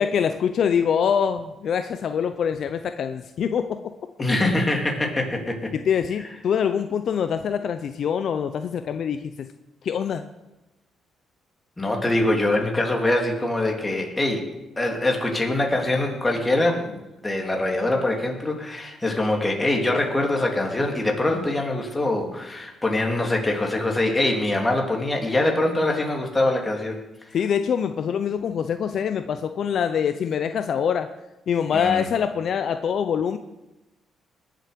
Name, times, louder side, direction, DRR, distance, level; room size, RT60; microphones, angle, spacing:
voice 1, 0.0-3.7 5.9-9.5 9.8-10.2 27.3-31.1 31.5-33.4, left 7 dB, 60° left, 9 dB, 0.7 m, -24 dB
voice 2, 4.2-5.7 6.2-6.3 11.8-14.5 14.8-27.0 31.7-32.1, left 2 dB, 15° left, 1 dB, 3.0 m, -23 dB
20.0 x 7.7 x 5.2 m, 0.99 s
cardioid pair, 90°, 0 cm